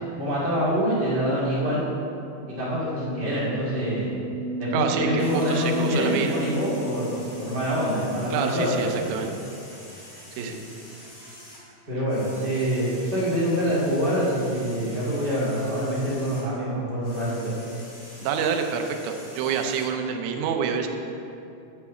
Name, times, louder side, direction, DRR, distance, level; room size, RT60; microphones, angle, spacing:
voice 1, 0.2-1.8 2.5-4.1 4.6-9.2 10.4-10.5 11.9-17.6, equal, 50° right, -9 dB, 0.7 m, -25 dB
sound 1, 2.3-8.0, right 4 dB, 85° left, 3.1 m, -35 dB
voice 2, 4.7-6.3 8.3-9.3 10.4-10.6 18.2-20.9, right 6 dB, 80° right, 4 dB, 2.6 m, -27 dB
Some woodwork tools, 5.2-16.5 16.9-19.9, left 1 dB, 70° left, 0.6 m, -46 dB
11.0 x 4.7 x 7.0 m, 2.7 s
omnidirectional pair, 5.7 m